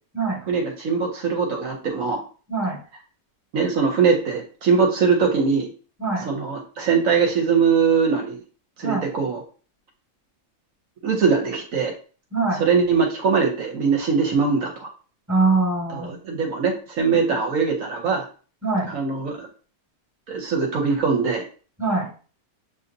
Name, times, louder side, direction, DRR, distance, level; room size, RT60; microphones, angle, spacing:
voice 1, 0.5-2.2 3.5-5.7 6.2-8.4 8.8-9.4 11.0-11.9 12.6-14.9 15.9-18.3 18.9-19.5 20.3-21.4, right 5 dB, 65° right, 2 dB, 1.0 m, -21 dB
voice 2, 12.3-12.6 15.3-16.1 18.6-18.9 21.8-22.1, right 3 dB, 10° right, 0 dB, 1.1 m, -22 dB
6.8 x 2.7 x 2.6 m, 0.39 s
omnidirectional pair, 1.6 m